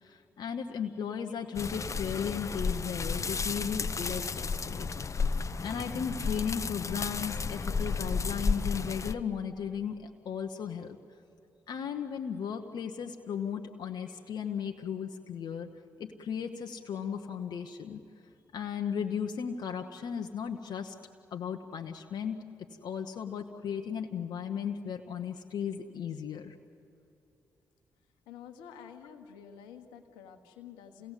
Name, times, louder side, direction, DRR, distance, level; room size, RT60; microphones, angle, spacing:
voice 1, 0.0-5.3 5.6-11.0 11.7-15.7 16.0-18.0 18.5-20.9 21.3-22.4 22.8-26.5, left 7 dB, 70° left, 3 dB, 1.1 m, -36 dB
sound 1, 1.5-9.1, left 4 dB, 45° left, 0.9 m, -32 dB
voice 2, 28.3-31.1, left 8 dB, 85° left, 6 dB, 1.4 m, -49 dB
27.5 x 17.0 x 8.3 m, 2.9 s
hypercardioid pair, 40°, 8 cm